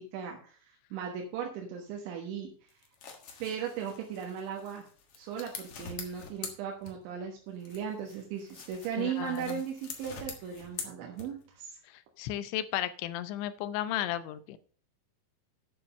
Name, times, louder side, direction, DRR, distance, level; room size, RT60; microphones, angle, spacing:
voice 1, 0.0-2.5 3.4-4.9 5.2-11.8, right 8 dB, 85° right, 0 dB, 3.7 m, -37 dB
sound 1, 2.7-7.2 7.6-11.6, left 6 dB, 70° left, 1.3 m, -45 dB
voice 2, 9.0-9.6 12.2-14.6, left 12 dB, 90° left, 14 dB, 3.1 m, -34 dB
9.3 x 7.1 x 5.3 m, 0.42 s
omnidirectional pair, 5.2 m